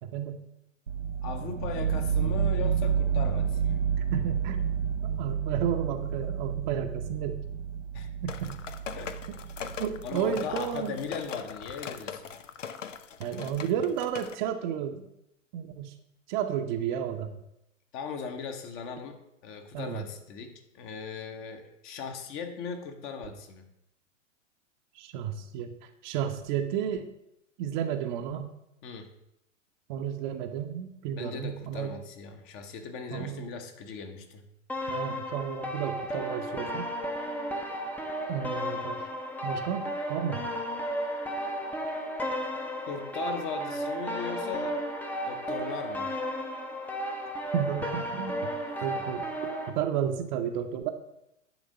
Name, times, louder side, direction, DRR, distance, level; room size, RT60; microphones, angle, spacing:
voice 1, 0.0-0.4 4.1-4.7 5.2-7.4 8.2-8.6 9.8-11.0 13.2-15.0 15.5-15.9 16.3-17.3 19.7-20.0 25.0-27.1 27.6-28.5 29.9-32.0 33.1-33.5 34.9-36.8 38.3-39.0 39.4-40.5 47.5-48.5 48.8-49.3 49.7-50.9, right 9 dB, 40° right, 6 dB, 0.8 m, -32 dB
sound 1, 0.9-10.7, right 7 dB, 85° right, 0.7 m, -30 dB
voice 2, 1.2-3.8 7.9-8.1 8.9-9.1 10.0-12.2 17.9-23.7 28.8-29.1 31.1-34.4 42.9-44.8 45.3-46.1 48.9-49.0, left 6 dB, 35° left, 6 dB, 1.1 m, -38 dB
sound 2, 8.3-14.3, left 7 dB, 75° left, 0.7 m, -41 dB
sound 3, 34.7-49.7, equal, 5° left, 0.7 m, -33 dB
10.5 x 3.6 x 6.5 m, 0.83 s
figure-of-eight pair, 105°, 38 cm